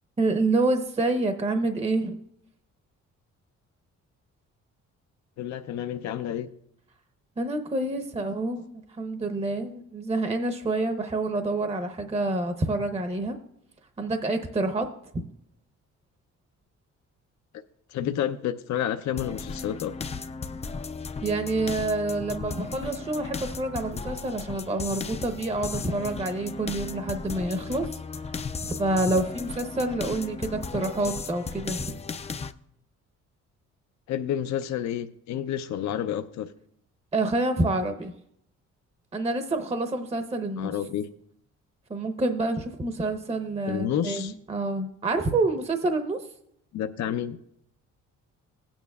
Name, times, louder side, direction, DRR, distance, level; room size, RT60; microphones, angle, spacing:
voice 1, 0.2-2.2 7.4-8.7 9.0-13.4 14.0-14.8 21.2-27.9 28.2-28.3 28.6-31.8 37.1-38.1 39.1-40.7 41.9-46.2, right 2 dB, 20° right, 7 dB, 0.8 m, -27 dB
voice 2, 5.4-6.5 17.9-19.9 34.1-36.5 40.6-41.1 43.7-44.3 46.7-47.4, left 10 dB, 65° left, 9 dB, 0.6 m, -30 dB
sound 1, 19.2-32.5, left 4 dB, 20° left, 0.4 m, -35 dB
16.0 x 8.9 x 2.3 m, 0.72 s
cardioid pair, 90°, 30 cm